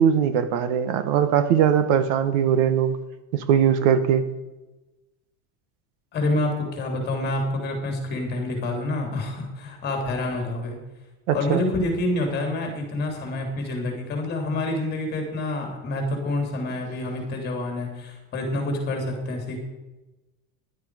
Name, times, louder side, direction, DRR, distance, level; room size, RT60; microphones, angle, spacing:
voice 1, 0.0-3.0 3.3-4.3 11.3-11.7, right 8 dB, 55° right, 12 dB, 1.2 m, -20 dB
voice 2, 6.1-10.8 11.3-19.6, left 2 dB, 25° left, 2 dB, 3.2 m, -27 dB
15.5 x 11.0 x 4.9 m, 1.1 s
cardioid pair, 180°, 42 cm